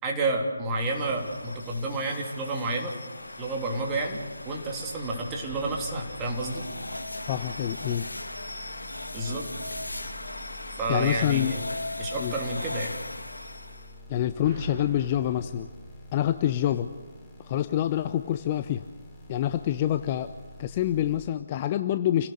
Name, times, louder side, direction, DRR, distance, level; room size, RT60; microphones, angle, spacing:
voice 1, 0.0-2.9 3.4-4.2 4.4-6.6 9.1-9.5 10.8-11.6 12.0-12.9, right 2 dB, 15° right, 0 dB, 3.2 m, -30 dB
sound 1, 0.7-14.0, left 2 dB, 75° left, 2.2 m, -39 dB
sound 2, 1.0-2.9 5.5-7.9 9.7-12.0 13.9-17.0, right 1 dB, 35° right, 7.1 m, -46 dB
sound 3, 3.2-21.3, left 1 dB, 10° left, 5.0 m, -48 dB
voice 2, 7.3-8.1 10.9-11.5 12.2-12.3 14.1-15.7 16.1-16.9 17.4-18.8 19.3-20.3 20.6-22.3, left 11 dB, 25° left, 10 dB, 0.6 m, -26 dB
29.5 x 17.5 x 6.7 m, 1.3 s
figure-of-eight pair, 150°, 0 cm